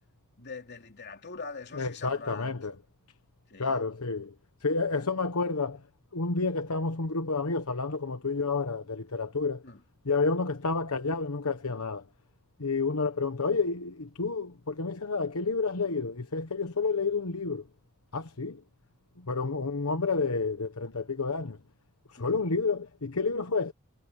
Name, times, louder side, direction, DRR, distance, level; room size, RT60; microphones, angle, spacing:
voice 1, 0.4-2.6 3.5-3.8 4.9-5.1 9.6-9.8 22.2-22.3, left 4 dB, 50° left, 3.2 m, -43 dB
voice 2, 1.8-2.7 3.6-4.3 4.6-5.8 6.1-9.6 10.0-12.0 12.6-17.6 18.1-18.6 19.3-21.6 22.2-23.7, left 4 dB, 80° left, 1.2 m, -30 dB
head